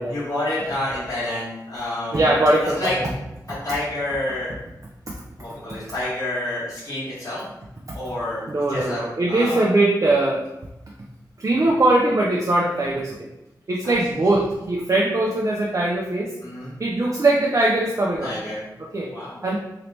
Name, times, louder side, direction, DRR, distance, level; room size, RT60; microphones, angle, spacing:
voice 1, 0.1-2.3 2.8-2.9 3.6-4.5 5.4-7.4 7.9-8.4 8.7-9.6 13.8-14.0 16.4-16.7 18.2-18.6 19.1-19.5, left 1 dB, 50° left, -11 dB, 1.3 m, -28 dB
voice 2, 2.1-3.1 8.5-10.5 11.4-13.3 13.7-16.3 16.8-18.3 18.8-19.1 19.4-19.6, right 2 dB, 45° right, -2 dB, 0.4 m, -21 dB
2.9 x 2.7 x 3.2 m, 0.92 s
wide cardioid pair, 70°, 7 cm